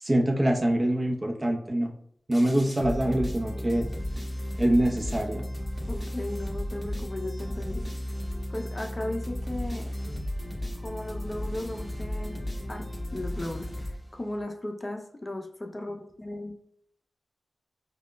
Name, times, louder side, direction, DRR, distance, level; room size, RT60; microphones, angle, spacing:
voice 1, 0.0-1.9 2.3-3.9 4.6-5.4, right 1 dB, 35° right, 1 dB, 0.7 m, -24 dB
sound 1, 2.3-14.4, equal, 10° left, 1.3 m, -34 dB
voice 2, 5.9-7.9 8.5-10.2 10.8-16.5, left 1 dB, 35° left, 3 dB, 0.5 m, -36 dB
4.9 x 2.2 x 2.2 m, 0.66 s
cardioid pair, 40°, 0 cm